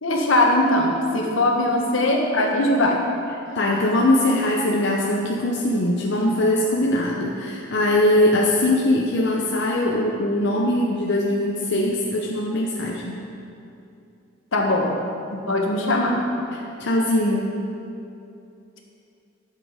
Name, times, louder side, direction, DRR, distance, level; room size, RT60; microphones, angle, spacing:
voice 1, 0.0-3.0 14.5-15.0 15.3-16.2, left 1 dB, 75° left, 0 dB, 1.4 m, -20 dB
voice 2, 3.5-13.2 16.5-17.5, left 1 dB, 55° left, -1 dB, 0.7 m, -21 dB
11.0 x 7.7 x 5.0 m, 2.7 s
head